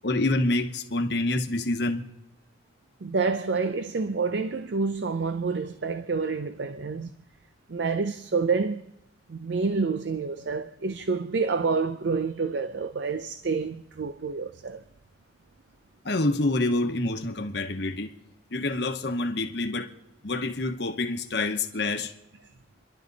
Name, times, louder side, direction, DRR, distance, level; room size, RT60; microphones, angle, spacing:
voice 1, 0.0-2.1 16.0-18.2 18.5-19.9 20.2-22.1, left 2 dB, 65° left, 1.2 m, -27 dB
voice 2, 3.0-7.1 7.7-8.8 9.3-14.8, right 4 dB, 70° right, 0.5 m, -28 dB
28.5 x 12.0 x 4.0 m
head